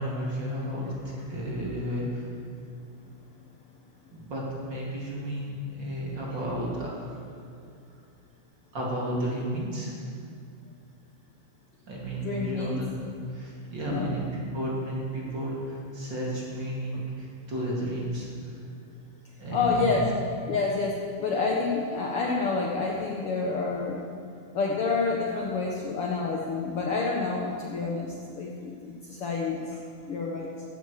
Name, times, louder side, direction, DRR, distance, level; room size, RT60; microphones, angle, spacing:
voice 1, 0.0-2.3 4.1-7.7 8.7-9.9 11.9-13.0 13.3-18.6 19.4-20.1, right 1 dB, 40° right, -4 dB, 3.1 m, -33 dB
voice 2, 12.2-12.8 13.9-14.1 16.9-17.1 19.5-20.1 20.5-24.1 24.5-29.8 30.1-30.5, left 4 dB, 60° left, -1 dB, 1.7 m, -28 dB
15.0 x 13.0 x 4.8 m, 2.3 s
omnidirectional pair, 3.5 m